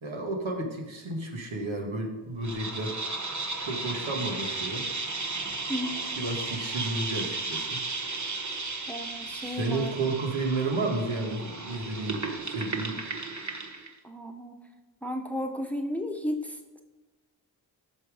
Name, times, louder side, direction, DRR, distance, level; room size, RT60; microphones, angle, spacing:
voice 1, 0.0-3.0 3.6-4.9 6.2-7.8 9.4-13.0, right 2 dB, 80° right, 2 dB, 1.9 m, -32 dB
sound 1, 2.4-13.9, right 3 dB, 40° right, 1.2 m, -34 dB
voice 2, 5.7-6.0 8.9-9.9 14.0-14.6 15.0-16.8, left 1 dB, 5° left, 4 dB, 1.1 m, -34 dB
13.5 x 5.8 x 5.1 m, 1.2 s
wide cardioid pair, 85°, 46 cm